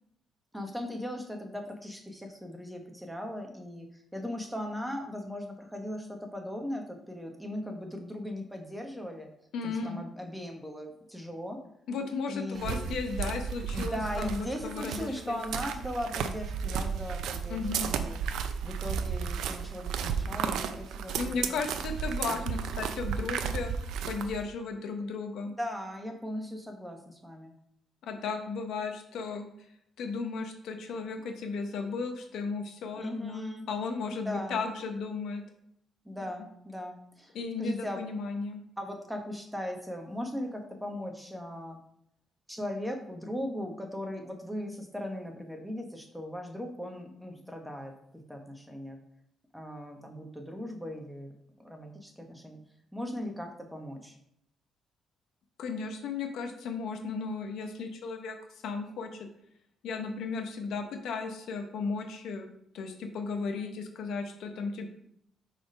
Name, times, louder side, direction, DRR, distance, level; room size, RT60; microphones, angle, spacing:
voice 1, 0.5-9.3 9.6-11.6 12.3-12.9 13.7-18.2 18.6-21.6 22.2-22.4 22.8-22.9 25.6-27.5 32.9-33.7 34.2-34.6 36.0-37.3 37.6-38.0 38.8-41.8 42.5-47.9 48.3-49.0 49.5-51.3 51.6-52.6 52.9-54.2, left 1 dB, 5° right, 3 dB, 1.2 m, -38 dB
voice 2, 9.5-10.0 11.9-15.4 17.5-17.9 21.2-23.7 24.1-25.5 28.0-29.5 30.0-35.4 37.3-38.6 55.6-58.4 58.6-59.2 59.8-62.5 62.7-64.9, left 4 dB, 80° left, 5 dB, 0.9 m, -35 dB
sound 1, 12.6-24.4, right 7 dB, 80° right, 0.5 m, -33 dB
4.8 x 4.2 x 5.3 m, 0.73 s
cardioid pair, 90°, 0 cm